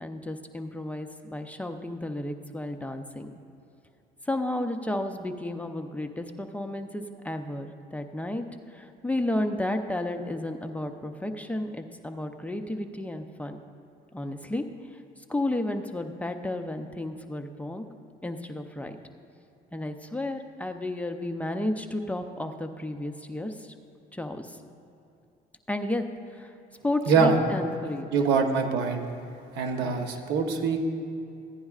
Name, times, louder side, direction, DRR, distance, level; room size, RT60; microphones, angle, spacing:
voice 1, 0.0-3.3 4.2-13.6 14.1-14.6 15.2-17.9 18.2-19.0 19.7-23.7 24.1-24.6 25.7-26.5 26.8-28.1 29.8-30.0, left 1 dB, 10° left, 5 dB, 0.5 m, -32 dB
voice 2, 27.1-27.4 28.1-29.0 29.5-30.8, right 5 dB, 85° right, 4 dB, 1.0 m, -24 dB
15.5 x 10.0 x 2.4 m, 2.7 s
cardioid pair, 110°, 17 cm